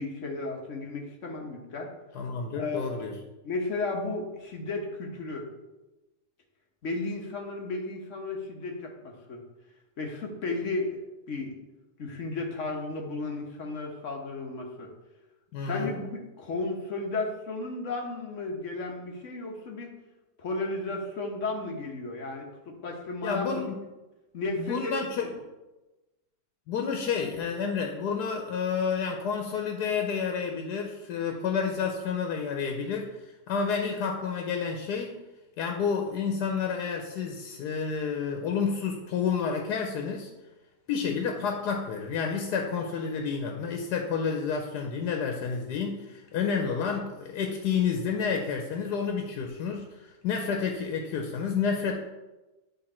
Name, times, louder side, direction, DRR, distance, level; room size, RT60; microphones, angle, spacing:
voice 1, 0.0-1.9 2.5-3.1 3.4-5.5 6.8-9.4 10.0-11.0 11.3-11.6 12.0-14.9 15.6-19.9 20.4-23.6 24.3-24.9, left 3 dB, 55° left, 1 dB, 1.3 m, -34 dB
voice 2, 2.1-3.1 15.5-15.9 23.2-23.7 24.6-25.3 26.7-35.2 35.6-40.3 40.9-51.9, left 6 dB, 85° left, 2 dB, 1.3 m, -30 dB
9.2 x 3.6 x 4.3 m, 1.1 s
omnidirectional pair, 1.7 m